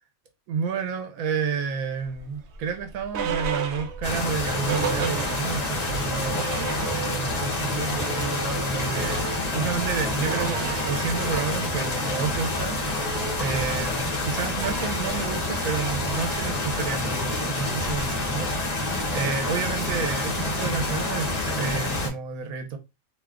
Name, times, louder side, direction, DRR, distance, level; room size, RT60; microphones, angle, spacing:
voice 1, 0.5-13.0 13.4-22.8, right 6 dB, 85° right, 1.1 m, -30 dB
sound 1, 2.1-5.8 6.1-6.2 6.3-7.4 7.7-18.2, right 6 dB, 60° right, 0.8 m, -35 dB
sound 2, 4.0-22.1, left 2 dB, 35° left, 0.9 m, -28 dB
2.7 x 2.3 x 3.5 m
omnidirectional pair, 1.4 m